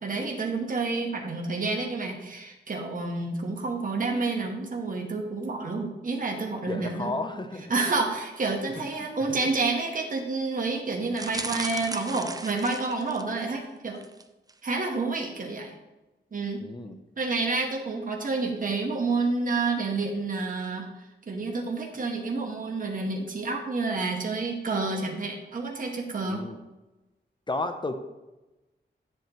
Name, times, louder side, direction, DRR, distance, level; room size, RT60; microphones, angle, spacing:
voice 1, 0.0-7.2 7.7-14.0 14.6-15.7 16.3-16.6 17.2-26.4, right 3 dB, 45° right, 1 dB, 1.3 m, -29 dB
voice 2, 6.7-7.7 9.0-9.4 16.6-17.0 26.3-26.6 27.5-28.0, left 2 dB, 25° left, 7 dB, 0.7 m, -33 dB
sound 1, 11.1-13.4 14.0-14.2 14.5-14.6, right 3 dB, 20° right, 0.5 m, -36 dB
9.3 x 7.8 x 3.0 m, 1.1 s
wide cardioid pair, 100°, 19 cm